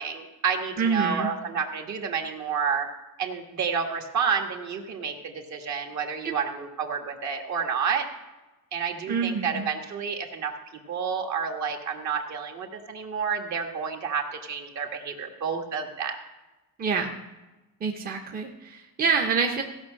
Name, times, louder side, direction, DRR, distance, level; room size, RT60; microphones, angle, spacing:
voice 1, 0.0-2.9 3.2-8.1 8.7-10.5 10.9-16.2, right 6 dB, 55° right, 3 dB, 1.5 m, -30 dB
voice 2, 0.8-1.3 6.2-6.3 9.1-9.7 16.8-17.1 17.8-19.6, right 5 dB, 25° right, 2 dB, 0.8 m, -26 dB
16.0 x 5.4 x 6.3 m, 1.1 s
cardioid pair, 140°, 34 cm